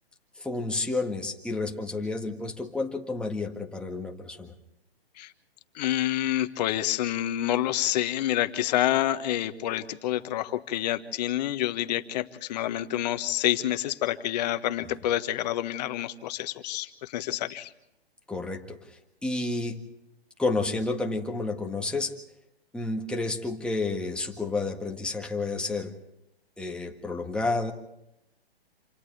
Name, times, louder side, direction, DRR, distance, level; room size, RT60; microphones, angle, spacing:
voice 1, 0.4-4.5 18.3-19.8 20.4-22.1 22.7-25.9 26.6-27.7, left 3 dB, 5° left, 2 dB, 1.7 m, -30 dB
voice 2, 5.7-17.7, left 13 dB, 40° left, 11 dB, 1.4 m, -28 dB
28.0 x 28.0 x 3.4 m, 0.85 s
hypercardioid pair, 135°, 32 cm